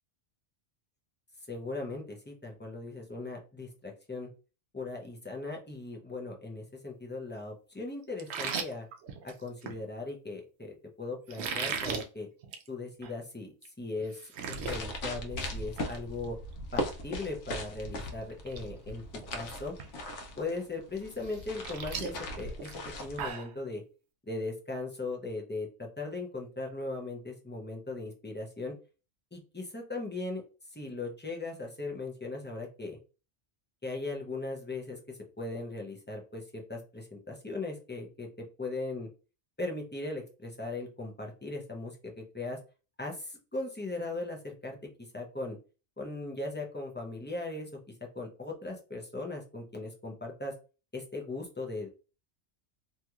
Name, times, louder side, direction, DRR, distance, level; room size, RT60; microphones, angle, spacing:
voice 1, 1.5-4.3 4.7-8.9 9.2-12.3 12.7-14.2 14.5-16.4 16.7-19.0 19.3-19.7 20.4-22.7 23.0-23.8 24.3-28.8 29.3-30.4 30.7-33.0 33.8-38.3 38.6-39.1 39.6-42.6 43.0-45.6 46.0-47.7 48.1-50.5 50.9-51.9, left 2 dB, 15° left, 0 dB, 0.4 m, -38 dB
sound 1, 8.2-9.8 11.3-12.0 12.4-12.7 13.0-13.1 13.6-13.7 14.0-14.8 15.2-15.5 15.8-15.9 17.7-17.8 18.3-18.6 18.9-19.3 19.8-19.9 21.2-23.5, right 6 dB, 70° right, 0.8 m, -37 dB
sound 2, 14.5-23.3, left 1 dB, 85° left, 1.0 m, -39 dB
3.0 x 2.8 x 2.3 m, 0.33 s
omnidirectional pair, 1.2 m